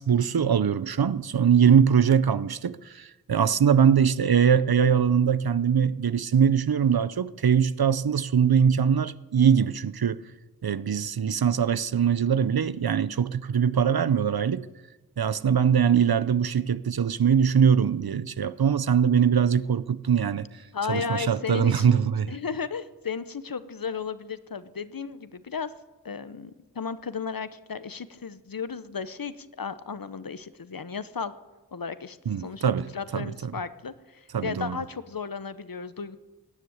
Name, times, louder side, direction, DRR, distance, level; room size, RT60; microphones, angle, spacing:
voice 1, 0.0-10.2 10.6-14.7 15.2-20.5 20.9-22.3 32.3-32.9 33.1-33.5 34.3-34.8, right 7 dB, 80° right, 0.7 m, -22 dB
voice 2, 20.7-22.0 22.3-25.7 26.0-31.3 31.7-32.6 32.9-36.2, left 5 dB, 70° left, 0.9 m, -34 dB
17.5 x 9.9 x 8.0 m
wide cardioid pair, 45°, 36 cm